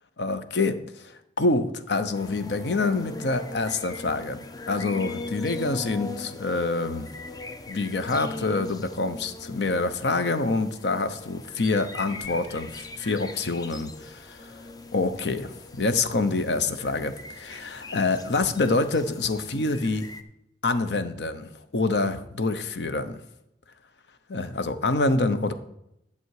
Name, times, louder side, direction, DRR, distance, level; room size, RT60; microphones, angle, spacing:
voice 1, 0.2-0.8 1.0-7.1 7.7-14.5 14.9-20.1 20.6-23.2 24.3-25.5, left 3 dB, 70° left, 10 dB, 0.8 m, -26 dB
sound 1, 2.1-20.2, left 2 dB, 20° left, 0.5 m, -40 dB
11.0 x 7.0 x 4.8 m, 0.83 s
head